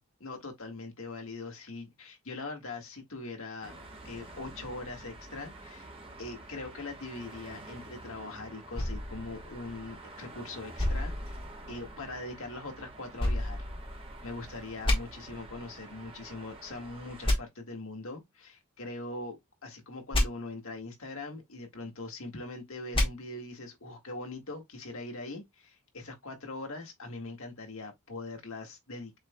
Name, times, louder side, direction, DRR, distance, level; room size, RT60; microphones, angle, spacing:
voice 1, 0.0-5.9 6.2-11.4 11.7-13.7 13.9-29.2, left 2 dB, 65° left, 1.5 m, -42 dB
sound 1, 3.6-17.3, right 2 dB, 25° right, 1.2 m, -48 dB
sound 2, 8.7-10.2 10.8-12.0 13.2-14.3 14.8-15.0 17.2-17.4 20.1-20.2 22.9-23.1, left 1 dB, 25° left, 1.5 m, -30 dB
7.2 x 3.3 x 2.2 m
head